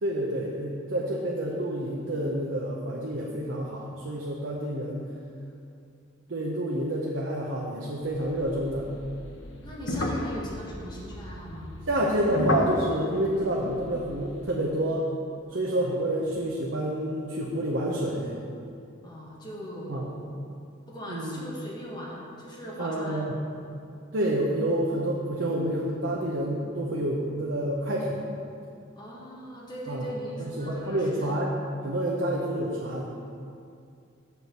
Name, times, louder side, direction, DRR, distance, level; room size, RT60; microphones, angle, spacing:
voice 1, 0.0-5.1 6.3-8.9 11.9-15.1 15.5-18.4 19.9-20.1 21.1-21.3 22.8-23.4 24.1-28.3 29.9-30.1 30.4-31.5 31.8-33.1, right 1 dB, 65° right, -2 dB, 0.8 m, -28 dB
sound 1, 8.0-14.6, left 2 dB, 65° left, 0.7 m, -34 dB
voice 2, 9.6-11.7 15.5-15.7 19.0-20.2 20.9-23.3 29.0-31.3, equal, 20° left, -5 dB, 1.3 m, -39 dB
6.8 x 4.6 x 6.7 m, 2.5 s
head